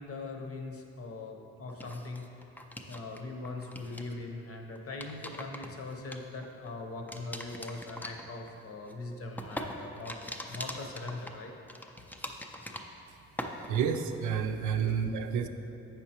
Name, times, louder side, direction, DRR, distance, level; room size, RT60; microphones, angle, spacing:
voice 1, 0.0-2.2 2.9-10.2 10.5-11.5 14.5-15.0, left 3 dB, 50° left, 2 dB, 0.8 m, -41 dB
sound 1, 1.7-3.2 3.4-4.1 4.8-6.7 7.1-13.1 13.4-14.0, left 1 dB, 5° left, 0.4 m, -42 dB
voice 2, 13.7-15.5, right 7 dB, 75° right, 7 dB, 0.5 m, -30 dB
7.9 x 5.7 x 2.9 m, 2.8 s
cardioid pair, 90°, 30 cm